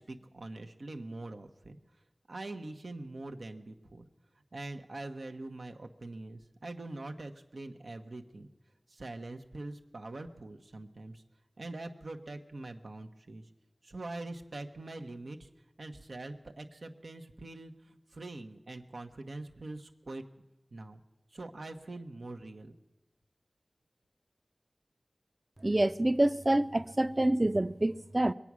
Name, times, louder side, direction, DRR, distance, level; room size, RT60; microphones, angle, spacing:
voice 1, 0.0-1.8 2.3-4.1 4.5-8.5 8.9-11.2 11.6-13.5 13.8-15.5 15.8-20.2 20.7-21.0 21.3-22.7, right 2 dB, 90° right, 1.0 m, -43 dB
voice 2, 25.6-28.3, right 1 dB, 35° right, 0.5 m, -27 dB
23.0 x 8.4 x 6.1 m
wide cardioid pair, 50°, 0 cm